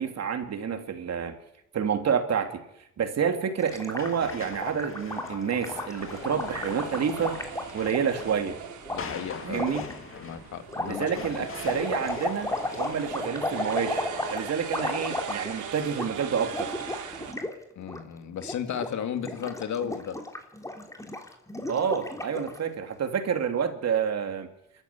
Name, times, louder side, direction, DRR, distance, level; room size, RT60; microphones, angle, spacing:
voice 1, 0.0-1.4 1.7-2.6 3.0-7.4 7.7-8.6 9.4-9.8 10.9-14.0 14.3-16.7 21.7-24.5, right 7 dB, 60° right, 6 dB, 3.0 m, -28 dB
Gurgling, 3.6-8.2 8.9-9.0 9.5-9.9 10.7-15.6 15.9-16.1 16.4-17.5 17.8-18.0 18.4-18.9 19.2-22.6, left 1 dB, 10° left, 3.4 m, -34 dB
sound 1, 3.7-13.2, left 5 dB, 45° left, 2.7 m, -43 dB
sound 2, 6.0-17.3, right 8 dB, 80° right, 3.4 m, -41 dB
voice 2, 8.9-9.6 10.1-11.1 11.7-11.9 17.8-20.2, left 8 dB, 70° left, 8 dB, 2.4 m, -34 dB
26.5 x 13.5 x 8.4 m, 0.82 s
cardioid pair, 90°, 30 cm